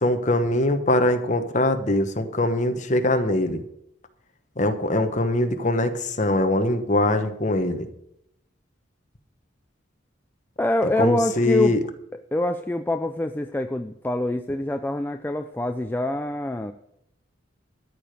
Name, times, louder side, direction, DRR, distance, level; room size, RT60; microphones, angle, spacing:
voice 1, 0.0-3.6 4.6-7.9 11.0-11.8, left 1 dB, 35° left, 7 dB, 1.1 m, -22 dB
voice 2, 10.6-11.8 12.1-16.7, left 1 dB, 10° left, 7 dB, 0.4 m, -25 dB
13.5 x 5.1 x 9.1 m, 0.78 s
head